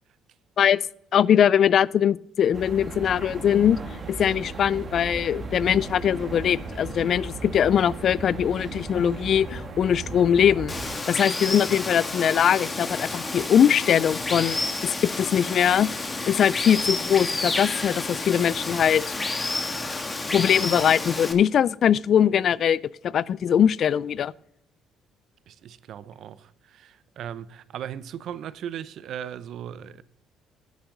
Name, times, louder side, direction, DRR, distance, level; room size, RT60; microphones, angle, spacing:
voice 1, 1.1-3.8 4.2-10.7 11.1-15.9 16.3-19.0 20.3-24.3, left 9 dB, 55° left, 0.3 m, -21 dB
sound 1, 2.5-10.9, right 3 dB, 35° right, 1.9 m, -36 dB
Water, 10.7-21.3, left 2 dB, 25° left, 1.4 m, -30 dB
voice 2, 25.5-30.0, right 9 dB, 65° right, 0.6 m, -37 dB
10.5 x 8.2 x 3.8 m
supercardioid pair, 75°, 0 cm